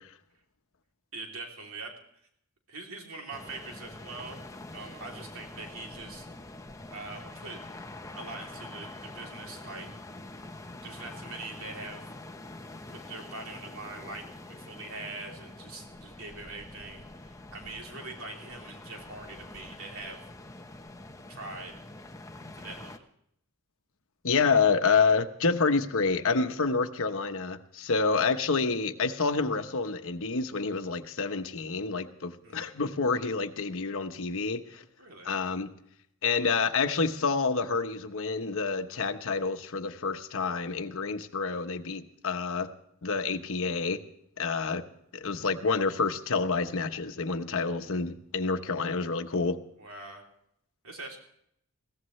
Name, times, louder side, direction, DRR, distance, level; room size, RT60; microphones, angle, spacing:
voice 1, 1.1-1.9 2.7-4.4 4.7-6.3 6.9-7.6 8.1-9.9 10.8-12.0 12.9-20.2 21.3-21.7 22.6-23.1 32.4-32.7 35.0-35.3 49.8-50.3 50.8-51.2, right 3 dB, 65° right, 1 dB, 3.1 m, -43 dB
sound 1, 3.3-23.0, left 2 dB, 15° left, 0.9 m, -45 dB
voice 2, 24.2-34.8 35.2-35.7 36.2-42.7 43.0-44.0 44.4-44.8 45.1-49.6, left 4 dB, 65° left, 7 dB, 1.1 m, -28 dB
22.0 x 17.0 x 3.2 m, 0.71 s
head